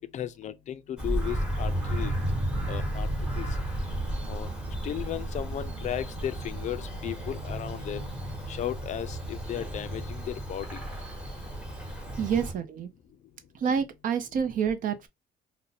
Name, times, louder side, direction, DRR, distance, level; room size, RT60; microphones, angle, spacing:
voice 1, 0.1-2.1 2.7-3.1 3.4-3.5 4.3-4.5 4.8-8.0 8.5-10.8, left 11 dB, 45° left, 0.4 m, -35 dB
Bird vocalization bird call bird song, 1.0-12.5, right 1 dB, 5° right, 1.2 m, -33 dB
sound 1, 1.7-8.4, right 5 dB, 80° right, 0.8 m, -49 dB
voice 2, 12.2-12.9 13.5-15.1, right 7 dB, 55° right, 0.6 m, -28 dB
2.6 x 2.1 x 4.0 m
cardioid pair, 110°, 17 cm